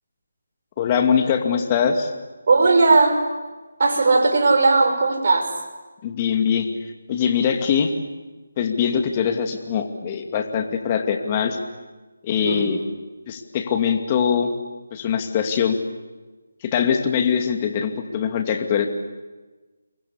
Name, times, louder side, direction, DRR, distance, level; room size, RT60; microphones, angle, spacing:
voice 1, 0.8-2.1 6.0-6.7 7.1-7.9 8.6-11.6 12.2-12.8 13.3-14.5 14.9-15.8 16.7-18.9, left 7 dB, 25° left, 5 dB, 2.5 m, -22 dB
voice 2, 2.5-3.2 3.8-5.5 12.4-12.6, right 3 dB, 50° right, 3 dB, 6.3 m, -17 dB
28.0 x 23.0 x 8.4 m, 1.2 s
figure-of-eight pair, 160°, 0 cm